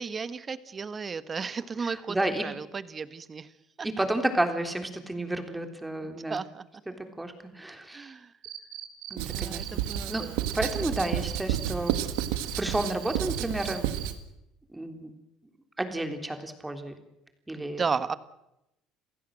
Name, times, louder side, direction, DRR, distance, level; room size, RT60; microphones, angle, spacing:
voice 1, 0.0-3.5 3.8-4.0 6.0-6.6 7.9-8.3 9.2-10.4 17.5-18.2, right 5 dB, 30° right, 14 dB, 1.4 m, -34 dB
voice 2, 1.8-2.4 4.0-6.4 6.9-8.1 9.1-9.8 10.1-12.0 12.4-14.0 14.7-15.1 15.8-17.0 17.5-17.9, right 1 dB, 10° right, 6 dB, 3.5 m, -31 dB
Cricket, 8.4-14.1, right 13 dB, 70° right, 3.4 m, -40 dB
Writing, 9.2-14.2, right 12 dB, 85° right, 1.5 m, -31 dB
28.0 x 16.0 x 7.7 m, 0.88 s
supercardioid pair, 95°, 0 cm